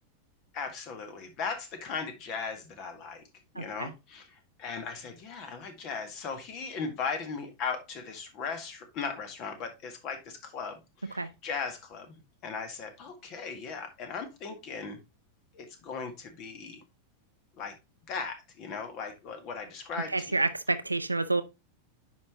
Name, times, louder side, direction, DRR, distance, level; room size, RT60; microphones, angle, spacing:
voice 1, 0.5-3.2 3.5-15.0 15.5-16.8 17.6-17.8 18.1-20.5, left 5 dB, 40° left, 1.8 m, -38 dB
voice 2, 3.6-3.9 11.2-11.3 20.1-21.4, right 2 dB, 85° right, 0.6 m, -29 dB
9.3 x 5.2 x 2.8 m
figure-of-eight pair, 90°, 0 cm